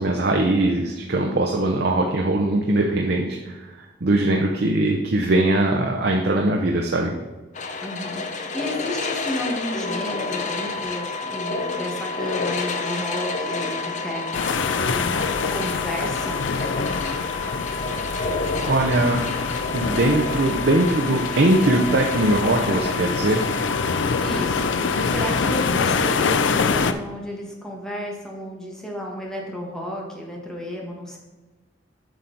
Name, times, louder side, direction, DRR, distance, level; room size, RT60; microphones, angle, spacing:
voice 1, 0.0-7.1 18.7-19.2 19.7-23.4, right 2 dB, 60° right, 1 dB, 0.7 m, -21 dB
sound 1, 7.5-22.9, left 3 dB, 45° left, 0.7 m, -31 dB
voice 2, 7.8-15.1 15.5-16.5 24.2-31.2, left 1 dB, 5° left, -2 dB, 1.5 m, -32 dB
sound 2, 9.8-25.7, left 4 dB, 20° left, 1.3 m, -35 dB
sound 3, 14.3-26.9, left 5 dB, 85° left, 0.5 m, -25 dB
8.1 x 5.9 x 4.0 m, 1.2 s
head